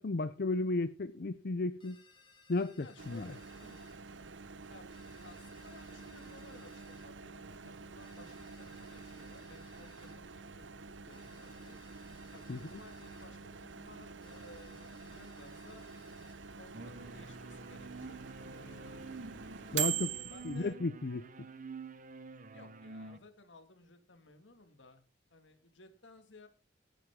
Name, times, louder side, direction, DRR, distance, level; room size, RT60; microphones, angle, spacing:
voice 1, 0.0-2.0 2.5-3.3 12.5-12.6 19.7-20.2 20.4-21.2, left 2 dB, 55° left, 0.6 m, -34 dB
sound 1, 1.8-4.0 4.9-7.1 8.0-10.2 11.1-13.3 14.2-16.4, left 5 dB, 30° left, 3.8 m, -63 dB
voice 2, 2.8-3.8 4.7-4.9 5.2-10.4 10.7-11.8 12.3-15.9 16.6-18.2 18.5-19.0 20.1-20.8 22.5-25.0 25.3-26.5, left 2 dB, 90° left, 2.2 m, -57 dB
Microwave oven, 3.0-20.7, right 8 dB, 80° right, 0.9 m, -45 dB
sound 2, 16.7-23.2, right 3 dB, 45° right, 1.0 m, -48 dB
17.0 x 9.2 x 3.7 m
head